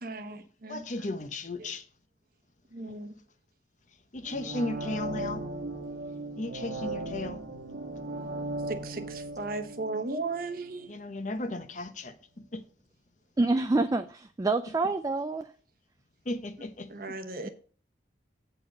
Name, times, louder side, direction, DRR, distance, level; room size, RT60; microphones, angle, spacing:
voice 1, 0.0-0.8 1.6-1.7 2.7-3.1 8.8-9.0 9.4-10.9 16.9-17.5, right 3 dB, 50° right, 1.0 m, -36 dB
voice 2, 0.7-1.8 4.1-5.4 6.3-7.4 10.9-12.1 12.5-12.6 16.3-16.9, left 2 dB, 40° left, 0.9 m, -35 dB
sound 1, 4.2-11.0 11.4-11.5, right 2 dB, 85° right, 1.4 m, -37 dB
voice 3, 13.4-15.4 17.4-17.5, right 3 dB, 20° right, 0.3 m, -27 dB
8.1 x 4.7 x 6.4 m
head